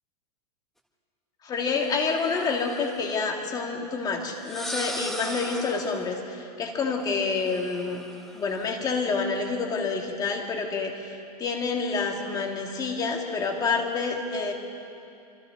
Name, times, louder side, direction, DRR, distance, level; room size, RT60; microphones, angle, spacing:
voice 1, 1.4-8.0 8.3-14.5, left 4 dB, 20° left, 2 dB, 2.3 m, -28 dB
sound 1, 1.9-3.2 4.3-6.0 7.4-8.7, equal, ahead, 1.6 m, -38 dB
27.0 x 25.5 x 4.0 m, 2.7 s
supercardioid pair, 150°, 20 cm